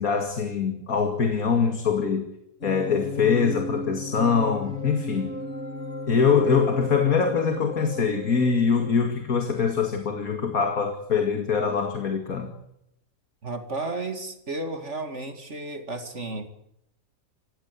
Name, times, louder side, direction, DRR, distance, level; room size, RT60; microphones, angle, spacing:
voice 1, 0.0-2.3 2.6-5.3 6.1-12.6, left 6 dB, 80° left, 6 dB, 2.6 m, -23 dB
sound 1, 2.6-9.1, left 1 dB, 50° left, 2.0 m, -35 dB
voice 2, 13.4-16.5, right 2 dB, 55° right, 7 dB, 2.5 m, -33 dB
26.0 x 15.5 x 8.3 m, 0.79 s
omnidirectional pair, 1.5 m